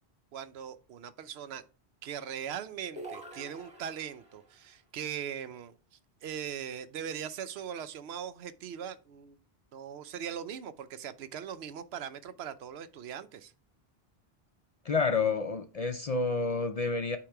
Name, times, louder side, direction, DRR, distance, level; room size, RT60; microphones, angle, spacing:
voice 1, 0.3-1.6 2.0-5.7 6.2-9.4 9.7-13.5, right 8 dB, 75° right, 0.8 m, -40 dB
sound 1, 3.0-4.5, right 2 dB, 5° right, 1.7 m, -46 dB
voice 2, 14.8-17.2, left 4 dB, 50° left, 0.5 m, -29 dB
8.4 x 3.1 x 4.5 m
omnidirectional pair, 1.1 m